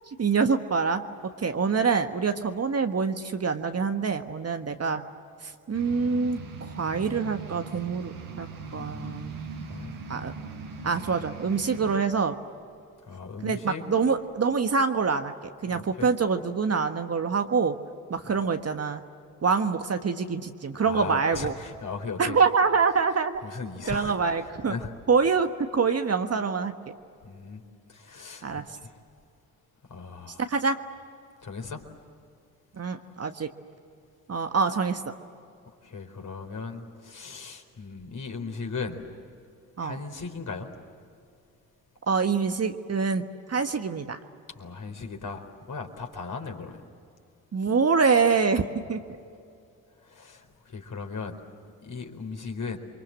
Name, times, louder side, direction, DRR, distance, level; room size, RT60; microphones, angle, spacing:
voice 1, 0.2-1.0 1.4-5.0 5.4-8.5 8.7-9.7 10.1-10.3 10.8-12.4 13.4-15.3 15.6-17.8 18.1-19.0 19.4-21.5 22.2-23.4 23.9-24.7 25.1-26.7 28.4-28.6 30.5-30.8 32.8-33.5 34.3-35.1 39.8-40.0 42.1-44.2 47.5-49.0, right 5 dB, 35° right, 7 dB, 1.5 m, -25 dB
sound 1, 5.7-12.0, right 4 dB, 90° right, 4.1 m, -40 dB
voice 2, 8.7-9.3 9.6-10.0 13.0-13.8 15.7-16.1 18.3-18.4 20.8-22.4 23.4-24.9 27.2-27.6 27.9-28.9 29.9-30.4 31.4-31.8 35.8-39.0 39.8-40.7 44.5-46.8 50.0-51.4 51.8-52.8, left 4 dB, 45° left, 3 dB, 4.3 m, -37 dB
29.0 x 24.5 x 7.7 m, 2.4 s
hypercardioid pair, 45°, 43 cm